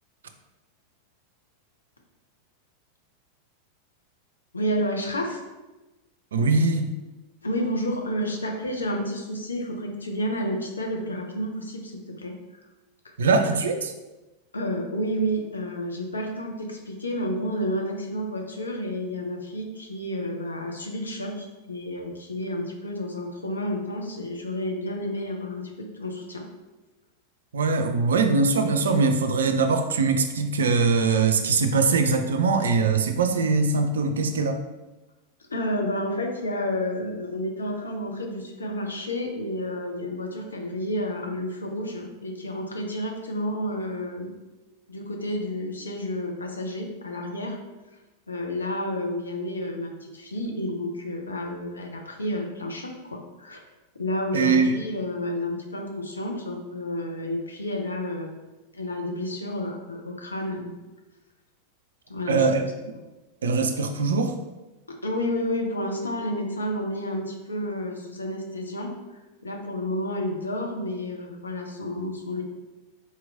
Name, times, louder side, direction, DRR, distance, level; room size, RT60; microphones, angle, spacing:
voice 1, 4.5-5.4 7.4-12.3 14.5-26.4 35.5-44.3 44.9-47.6 48.3-53.6 54.0-58.3 58.7-60.7 62.1-62.7 64.9-68.9 69.4-72.4, left 1 dB, 75° left, 2 dB, 0.6 m, -30 dB
voice 2, 6.3-6.9 13.2-13.9 27.5-34.6 54.3-54.8 62.3-62.7 63.4-64.4, right 4 dB, 65° right, 7 dB, 0.3 m, -22 dB
4.1 x 2.9 x 2.5 m, 1.1 s
figure-of-eight pair, 90°, 0 cm